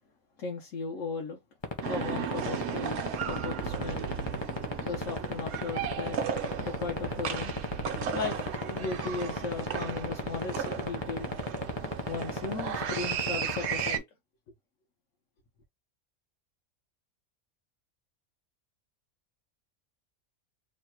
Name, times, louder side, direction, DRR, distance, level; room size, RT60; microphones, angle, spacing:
voice 1, 0.4-1.4 1.9-4.1 4.8-6.2 6.6-7.5 8.1-11.3 12.1-14.0, left 4 dB, 85° left, 1.3 m, -37 dB
sound 1, 1.6-13.9, left 3 dB, 30° left, 0.6 m, -30 dB
sound 2, 1.8-14.0, right 8 dB, 65° right, 0.9 m, -35 dB
3.2 x 2.3 x 4.4 m
omnidirectional pair, 1.3 m